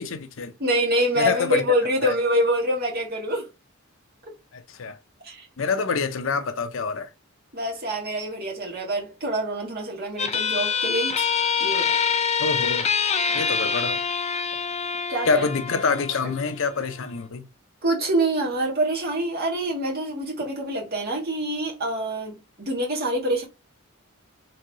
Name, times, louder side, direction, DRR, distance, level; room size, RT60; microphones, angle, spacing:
voice 1, 0.0-0.5 1.2-1.6 2.0-2.1 4.5-5.0 5.6-7.1 12.4-12.9 13.3-14.0 15.2-17.5, left 5 dB, 70° left, 0.7 m, -26 dB
voice 2, 0.6-3.5 4.2-4.3 5.2-5.5 7.5-11.3 11.6-12.0 15.1-15.5 16.2-16.3 17.8-23.4, right 1 dB, 50° right, 2.0 m, -25 dB
sound 1, 10.2-17.2, left 6 dB, 35° left, 0.7 m, -26 dB
4.1 x 3.7 x 3.0 m
head